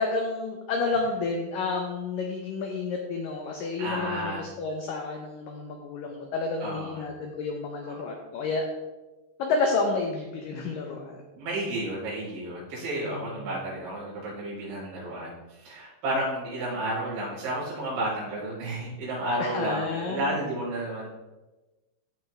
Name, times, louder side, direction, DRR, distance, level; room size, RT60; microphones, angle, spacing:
voice 1, 0.0-8.7 9.4-11.2 13.1-13.5 19.4-20.4, left 3 dB, 80° left, 2 dB, 2.0 m, -30 dB
voice 2, 3.8-4.5 6.6-7.0 7.8-7.9 11.4-21.1, right 1 dB, 70° right, -7 dB, 5.8 m, -32 dB
14.0 x 6.0 x 3.3 m, 1.1 s
omnidirectional pair, 5.1 m